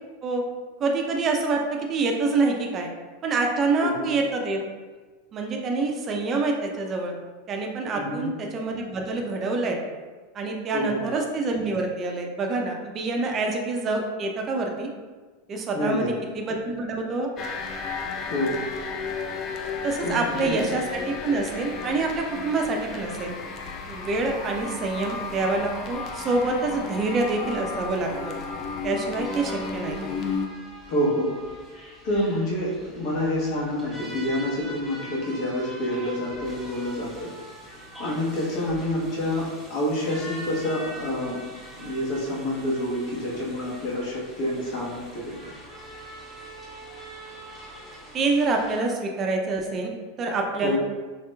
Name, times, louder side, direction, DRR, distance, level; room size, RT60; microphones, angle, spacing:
voice 1, 0.8-1.6 1.9-2.9 3.2-4.6 5.3-7.1 7.5-9.8 10.3-14.9 15.5-16.1 16.3-17.3 19.8-23.3 23.9-28.4 28.8-30.0 48.1-50.8, right 3 dB, 35° right, 1 dB, 0.5 m, -26 dB
voice 2, 3.8-4.1 7.9-8.3 10.7-11.0 15.7-16.1 18.3-18.6 20.0-20.6 30.9-31.3 32.0-37.3 38.0-41.3 41.8-45.5 50.6-50.8, left 1 dB, 55° left, -5 dB, 1.1 m, -27 dB
sound 1, 17.4-30.5, left 4 dB, 40° left, 0.4 m, -33 dB
sound 2, 29.2-48.8, right 1 dB, 5° left, 1.3 m, -43 dB
3.2 x 2.9 x 2.2 m, 1.3 s
hypercardioid pair, 95°, 0 cm